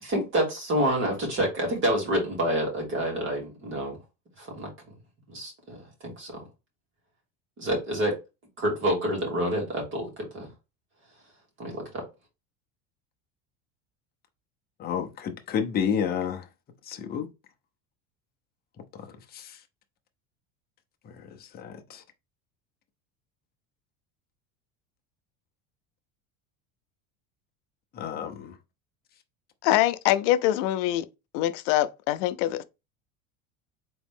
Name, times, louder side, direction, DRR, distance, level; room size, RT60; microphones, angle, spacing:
voice 1, 0.0-4.0 4.4-4.7 5.3-5.8 6.0-6.4 7.6-8.2 8.6-10.5 11.6-12.0, right 1 dB, 35° right, 2.5 m, -28 dB
voice 2, 14.8-16.4 16.9-17.3 19.3-19.5 21.6-22.0 27.9-28.5, left 7 dB, 25° left, 0.7 m, -30 dB
voice 3, 29.6-31.1 31.3-32.6, left 14 dB, 70° left, 0.6 m, -24 dB
4.0 x 3.1 x 3.6 m
cardioid pair, 150°, 35 cm